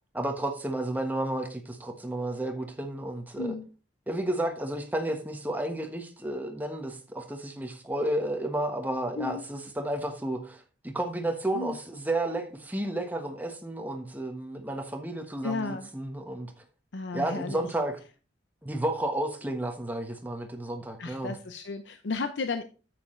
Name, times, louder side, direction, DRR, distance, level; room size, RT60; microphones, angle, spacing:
voice 1, 0.1-3.5 4.1-16.5 17.1-18.0 18.6-21.4, right 1 dB, 10° right, 1.3 m, -32 dB
voice 2, 3.4-3.7 9.2-9.4 11.5-11.8 15.4-15.9 16.9-17.7 21.0-22.6, left 3 dB, 70° left, 0.7 m, -33 dB
9.4 x 7.7 x 3.2 m
head